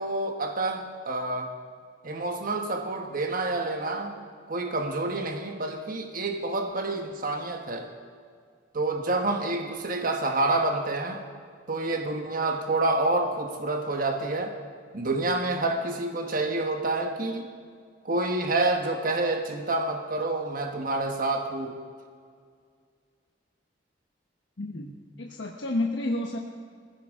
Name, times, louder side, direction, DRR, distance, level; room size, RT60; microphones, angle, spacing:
voice 1, 0.0-1.5 2.0-7.9 8.7-11.2 11.7-14.5 14.9-17.5 18.0-21.8 24.7-24.9, right 2 dB, 50° right, 4 dB, 1.3 m, -28 dB
voice 2, 24.6-24.9 25.2-26.4, left 2 dB, 85° left, 0 dB, 1.1 m, -30 dB
19.0 x 15.5 x 3.7 m, 2.1 s
head